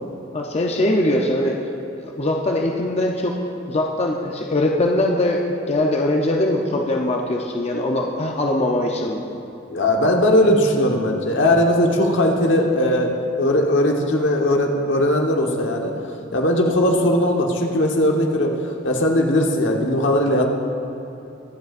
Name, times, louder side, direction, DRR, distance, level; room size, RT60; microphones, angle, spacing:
voice 1, 0.3-1.6 1.9-3.4 3.7-9.2, left 1 dB, 35° left, 0 dB, 0.6 m, -21 dB
voice 2, 9.7-15.9 16.3-18.5 18.8-20.4, left 1 dB, 80° left, 1 dB, 1.2 m, -19 dB
23.0 x 7.9 x 2.5 m, 2.7 s
head